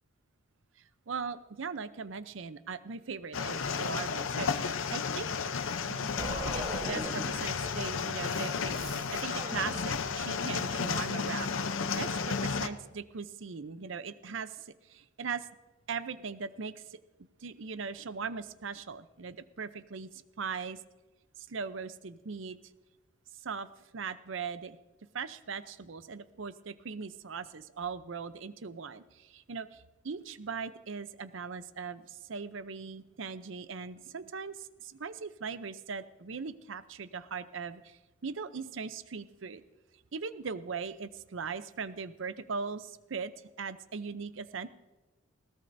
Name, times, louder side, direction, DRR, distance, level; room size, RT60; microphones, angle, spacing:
voice 1, 1.1-5.3 5.9-6.1 6.5-8.7 9.1-15.5 15.9-17.0 17.4-20.8 21.5-22.6 23.4-23.7 23.9-24.8 25.1-39.6 40.1-43.3 43.6-44.7, right 5 dB, 75° right, 13 dB, 0.6 m, -39 dB
sound 1, 3.3-12.7, left 5 dB, 85° left, 0.7 m, -33 dB
sound 2, 6.2-10.3, right 1 dB, 25° right, 2.1 m, -41 dB
20.5 x 17.0 x 2.7 m, 1.1 s
head